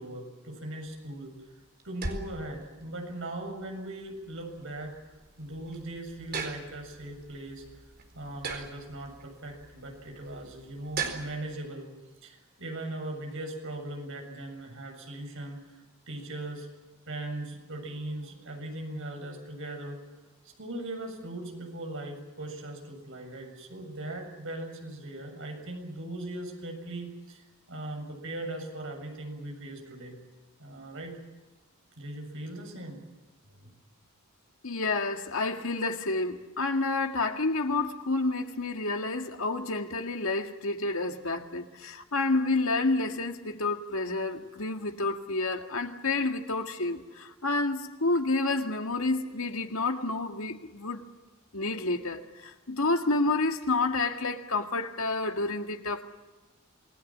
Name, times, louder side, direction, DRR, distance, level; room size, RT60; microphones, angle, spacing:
voice 1, 0.0-1.4 1.8-4.9 5.4-7.6 8.1-11.9 12.2-16.7 17.1-20.0 20.4-30.2 30.6-31.2 32.0-33.0 33.5-33.7, right 1 dB, 60° right, 7.3 m, -39 dB
sound 1, 0.8-11.6, right 4 dB, 45° right, 4.3 m, -41 dB
voice 2, 34.6-51.0 51.5-56.0, left 3 dB, 65° left, 1.9 m, -29 dB
28.0 x 20.0 x 7.4 m
head